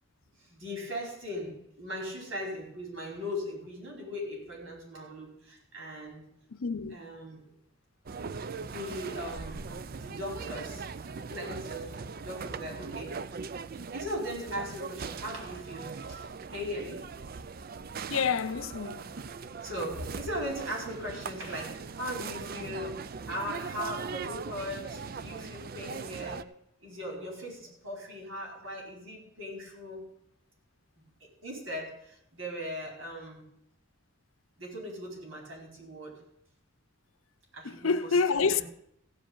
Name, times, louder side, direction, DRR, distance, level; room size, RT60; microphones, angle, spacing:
voice 1, 0.4-6.2 6.9-7.4 8.6-10.9 11.3-13.2 13.9-17.0 17.8-17.9 19.6-23.0 23.3-26.5 26.8-30.0 31.0-33.4 34.6-36.1 37.5-38.6, equal, 75° right, 4.7 m, -39 dB
voice 2, 6.5-6.9 18.1-19.1 37.6-38.6, left 5 dB, 80° left, 0.7 m, -28 dB
sound 1, 8.1-26.4, right 5 dB, 45° right, 0.4 m, -40 dB
15.5 x 5.2 x 8.7 m
head